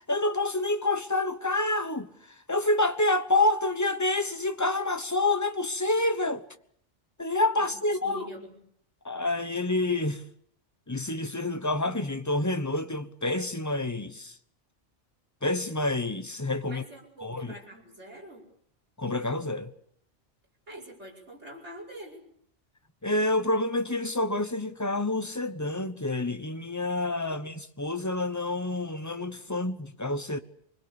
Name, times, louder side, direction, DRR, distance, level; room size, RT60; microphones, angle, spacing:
voice 1, 0.0-6.4 7.2-8.3 9.0-10.2 10.9-14.4 15.4-16.8 17.2-17.5 19.0-19.7 23.0-30.4, left 2 dB, 15° left, 1.0 m, -28 dB
voice 2, 7.6-8.5 16.7-18.5 20.7-22.2 27.3-27.4, equal, 70° right, 5.8 m, -44 dB
24.5 x 22.0 x 7.0 m
omnidirectional pair, 1.2 m